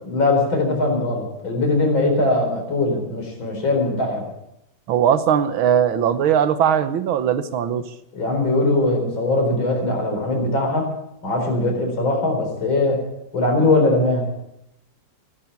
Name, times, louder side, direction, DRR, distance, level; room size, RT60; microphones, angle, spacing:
voice 1, 0.0-4.3 8.1-10.9 11.2-13.0 13.3-14.2, left 2 dB, 75° left, 2 dB, 5.1 m, -20 dB
voice 2, 4.9-7.8, right 9 dB, 90° right, 12 dB, 1.8 m, -19 dB
15.5 x 12.0 x 7.1 m, 0.83 s
omnidirectional pair, 2.2 m